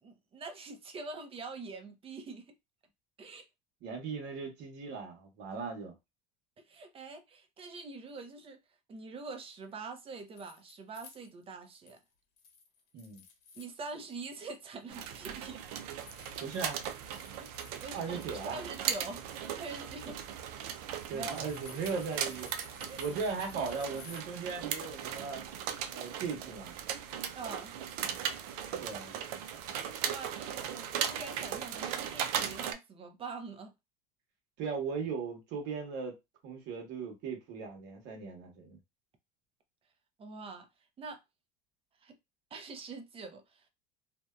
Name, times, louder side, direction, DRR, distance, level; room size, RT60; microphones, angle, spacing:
voice 1, 0.0-2.5 3.2-3.4 6.6-8.6 8.9-12.0 13.6-15.6 17.4-20.2 20.9-21.4 21.7-21.8 22.8-23.2 27.3-27.7 30.0-33.7 40.2-40.7 41.0-41.2 42.0-42.1 42.5-43.6, right 3 dB, 30° right, 0.6 m, -44 dB
voice 2, 3.8-5.9 12.9-13.2 16.4-16.8 17.9-18.6 21.1-22.5 23.0-25.4 25.9-26.8 28.8-29.2 34.6-36.1 36.4-38.8, right 5 dB, 60° right, 1.1 m, -38 dB
sound 1, 10.0-12.0 12.4-14.3 14.6-24.2, left 6 dB, 80° left, 1.1 m, -56 dB
sound 2, 14.9-32.7, right 9 dB, 85° right, 0.4 m, -38 dB
2.6 x 2.2 x 2.3 m
supercardioid pair, 105°, 20 cm